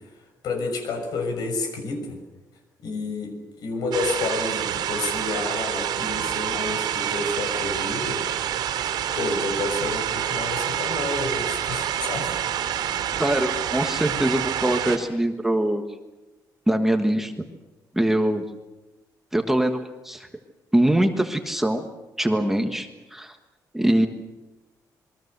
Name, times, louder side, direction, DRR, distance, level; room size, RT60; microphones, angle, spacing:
voice 1, 0.4-2.2 2.8-3.3 3.6-8.2 9.1-12.3, left 3 dB, 70° left, 6 dB, 6.3 m, -29 dB
sound 1, 3.9-15.0, right 10 dB, 85° right, 3.0 m, -27 dB
voice 2, 13.2-15.8 16.7-17.3 17.9-18.4 19.3-19.8 20.0-20.3 20.7-21.9 22.2-23.4 23.7-24.1, right 1 dB, 5° right, 5 dB, 1.4 m, -22 dB
27.5 x 22.5 x 6.7 m, 1.1 s
cardioid pair, 180°, 7 cm